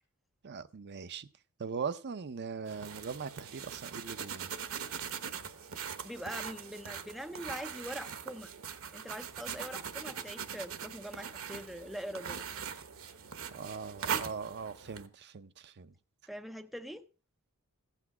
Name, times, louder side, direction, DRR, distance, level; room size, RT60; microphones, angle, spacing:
voice 1, 0.4-1.3 1.6-4.5 13.5-15.9, right 5 dB, 50° right, 0.5 m, -40 dB
sound 1, 2.7-15.1, right 7 dB, 65° right, 1.0 m, -41 dB
voice 2, 6.0-8.5 8.9-12.4 16.3-17.1, equal, ahead, 0.5 m, -43 dB
15.0 x 8.3 x 4.8 m
head